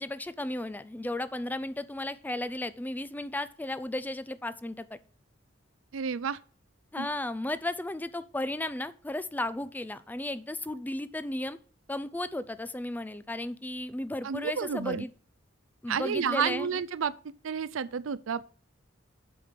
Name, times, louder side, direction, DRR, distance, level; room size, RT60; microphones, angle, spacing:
voice 1, 0.0-5.0 6.9-11.6 11.9-15.1 15.8-16.7, left 1 dB, 10° left, 0.4 m, -34 dB
voice 2, 5.9-6.4 7.0-7.1 14.2-15.0 15.9-17.1 17.4-18.5, right 6 dB, 90° right, 0.5 m, -30 dB
7.8 x 5.1 x 5.8 m
head